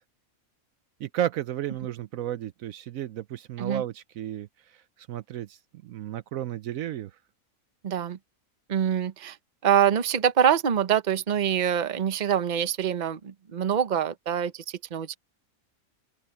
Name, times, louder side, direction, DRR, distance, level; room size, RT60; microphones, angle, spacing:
voice 1, 1.0-7.2, right 11 dB, 70° right, 1.0 m, -33 dB
voice 2, 7.8-8.2 8.7-9.4 9.6-15.2, right 9 dB, 35° right, 0.9 m, -25 dB
omnidirectional pair, 1.5 m